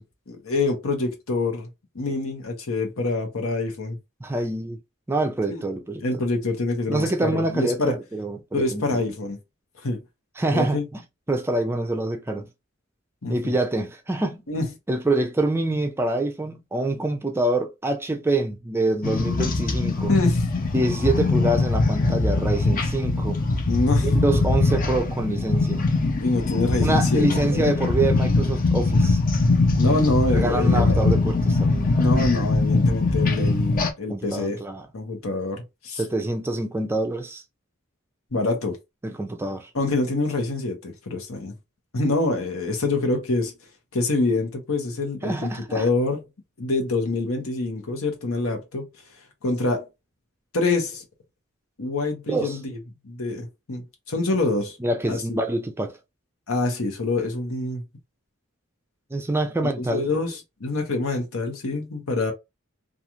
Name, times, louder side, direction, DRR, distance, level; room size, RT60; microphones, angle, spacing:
voice 1, 0.0-1.7 1.9-4.0 5.5-5.6 6.0-7.9 8.5-9.4 9.8-10.0 10.5-10.8 13.2-13.6 14.5-14.7 20.1-20.4 23.7-24.1 26.2-27.7 29.8-31.0 32.0-34.6 34.9-36.0 38.3-38.8 39.7-41.5 41.9-43.5 43.9-46.2 46.6-48.8 49.4-49.9 50.5-51.0 51.8-52.6 53.0-54.8 55.1-55.4 56.5-57.8 59.8-62.3, left 2 dB, 85° left, 0.9 m, -26 dB
voice 2, 4.2-4.8 5.1-6.0 6.9-9.0 10.4-11.0 11.3-12.5 13.3-14.4 14.9-20.1 20.7-23.4 24.0-25.9 26.8-29.2 30.3-32.1 34.1-34.9 36.0-37.4 39.0-39.7 45.2-45.9 52.3-52.6 54.8-56.0 59.1-60.1, right 2 dB, 10° right, 0.4 m, -26 dB
sound 1, 19.0-33.9, left 3 dB, 40° left, 0.6 m, -22 dB
2.4 x 2.4 x 2.9 m
head